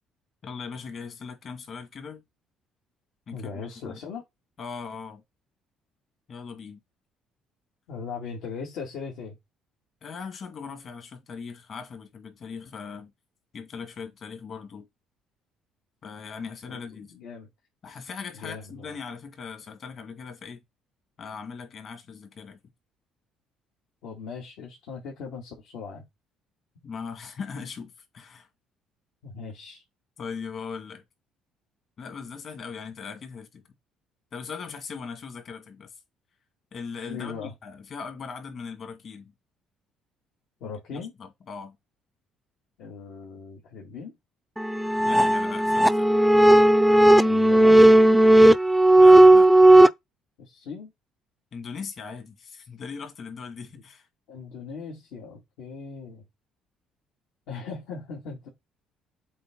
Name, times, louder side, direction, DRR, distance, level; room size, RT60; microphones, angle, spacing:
voice 1, 0.4-2.2 3.3-4.0 4.6-5.2 6.3-6.8 10.0-13.1 13.5-14.9 16.0-17.1 17.8-20.6 21.2-22.6 26.8-28.5 30.2-31.0 32.0-33.6 34.3-35.9 36.7-39.3 40.9-41.8 45.0-46.1 49.0-49.5 51.5-54.1, left 5 dB, 45° left, 2.2 m, -39 dB
voice 2, 3.3-4.2 7.9-9.3 16.7-17.5 18.4-18.9 24.0-26.0 29.2-29.8 37.1-37.5 40.6-41.1 42.8-44.2 47.2-47.9 50.4-50.9 54.3-56.2 57.5-58.5, left 5 dB, 80° left, 2.6 m, -39 dB
sound 1, 44.6-49.9, right 1 dB, ahead, 0.4 m, -15 dB
7.7 x 3.5 x 3.9 m
cardioid pair, 115°, 0 cm